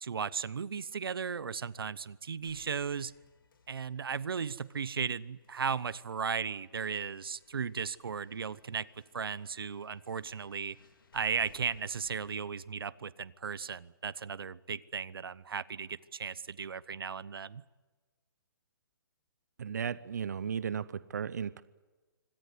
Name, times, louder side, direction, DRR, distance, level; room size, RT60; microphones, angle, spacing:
voice 1, 0.0-3.1 3.7-8.9 9.1-10.8 11.1-17.6, right 6 dB, 85° right, 20 dB, 1.0 m, -36 dB
sound 1, 2.4-14.4, left 4 dB, 70° left, 3.8 m, -63 dB
voice 2, 19.6-21.6, right 7 dB, 50° right, 18 dB, 0.7 m, -35 dB
25.0 x 18.0 x 9.6 m, 1.3 s
hypercardioid pair, 180°, 12 cm